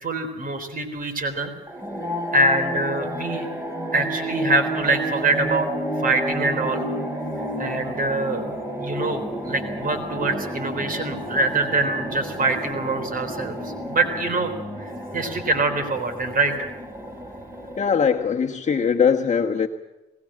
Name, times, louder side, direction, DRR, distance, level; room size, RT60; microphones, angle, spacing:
voice 1, 0.0-1.5 2.3-3.5 3.9-5.7 6.0-6.9 7.6-8.4 8.8-14.5 14.8-16.5, right 2 dB, 45° right, 6 dB, 4.0 m, -24 dB
sound 1, 1.7-18.2, right 1 dB, 15° right, 5.1 m, -31 dB
voice 2, 17.8-19.7, left 6 dB, 35° left, 2 dB, 1.3 m, -21 dB
20.0 x 19.5 x 7.6 m, 1.1 s
cardioid pair, 90°, 20 cm